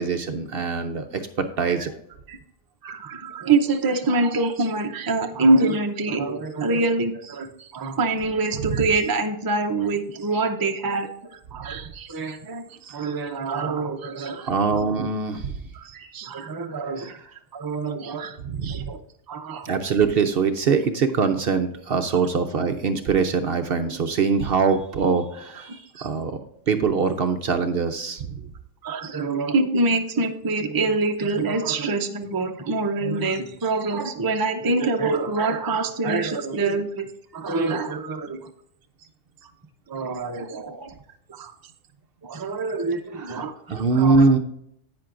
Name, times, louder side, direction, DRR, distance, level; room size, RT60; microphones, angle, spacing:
voice 1, 0.0-1.9 8.7-8.8 12.9-13.1 14.4-15.6 17.0-17.2 18.4-18.9 19.6-26.4 26.7-28.4 43.2-43.4 43.7-44.4, right 5 dB, 55° right, 7 dB, 0.7 m, -23 dB
voice 2, 2.8-14.5 15.7-17.1 17.5-19.0 19.3-19.7 22.3-22.4 25.9-26.1 28.8-37.1 37.3-38.4 39.4-39.5 39.9-40.9 41.3-41.5 42.2-43.5 43.9-44.3, right 3 dB, 25° right, 5 dB, 0.5 m, -25 dB
10.5 x 8.7 x 2.5 m, 0.74 s
omnidirectional pair, 1.3 m